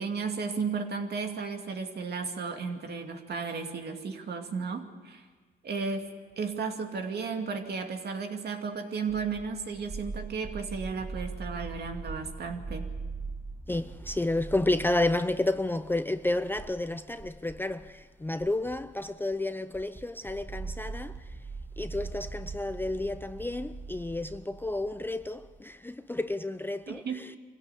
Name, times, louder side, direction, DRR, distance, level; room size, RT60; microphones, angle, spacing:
voice 1, 0.0-5.2 5.6-6.1 6.4-12.9 26.9-27.2, right 5 dB, 55° right, 2.5 m, -34 dB
sound 1, 9.1-18.7 19.0-19.5 19.7-25.6, right 4 dB, 15° right, 1.4 m, -42 dB
voice 2, 13.7-21.3 21.8-27.4, left 2 dB, 10° left, 0.6 m, -31 dB
24.5 x 16.0 x 8.2 m
cardioid pair, 90°, 20 cm